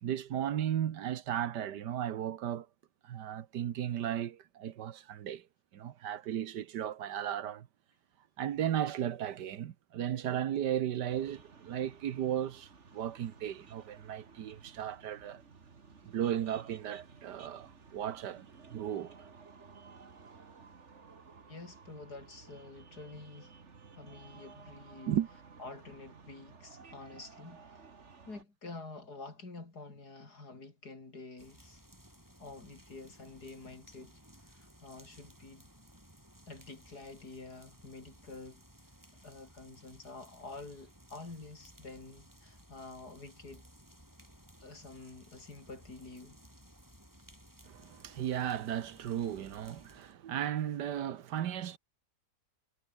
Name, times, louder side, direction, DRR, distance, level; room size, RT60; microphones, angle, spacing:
voice 1, 0.0-2.7 3.0-5.4 5.7-7.7 8.4-15.4 16.0-19.1 25.1-25.3 47.6-51.8, right 10 dB, 75° right, 1.6 m, -35 dB
sound 1, 11.1-28.4, right 5 dB, 40° right, 2.1 m, -55 dB
voice 2, 21.5-23.5 24.0-25.2 25.6-27.8 28.2-31.8 32.4-34.2 34.6-35.6 36.5-38.6 39.2-43.6 44.6-46.4, left 3 dB, 65° left, 5.0 m, -48 dB
sound 2, 31.4-50.1, equal, 10° right, 7.9 m, -58 dB
omnidirectional pair, 1.8 m